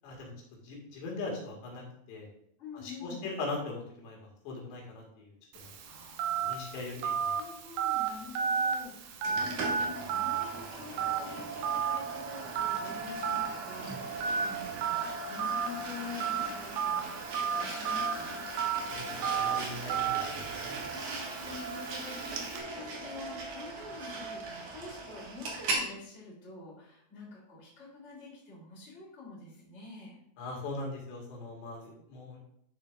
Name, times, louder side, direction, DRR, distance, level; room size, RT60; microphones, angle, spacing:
voice 1, 0.6-2.3 2.7-5.7 6.4-7.3 18.9-19.1 19.3-20.8 30.4-32.4, left 3 dB, 85° left, -2 dB, 4.0 m, -40 dB
voice 2, 2.6-3.3 5.8-6.6 7.4-18.4 20.8-30.2, left 4 dB, 20° left, -6 dB, 2.7 m, -47 dB
Telephone, 5.5-22.6, right 7 dB, 75° right, 2.5 m, -34 dB
sound 1, 9.2-25.9, right 3 dB, 60° right, 2.4 m, -39 dB
11.0 x 6.6 x 2.4 m, 0.71 s
omnidirectional pair, 4.9 m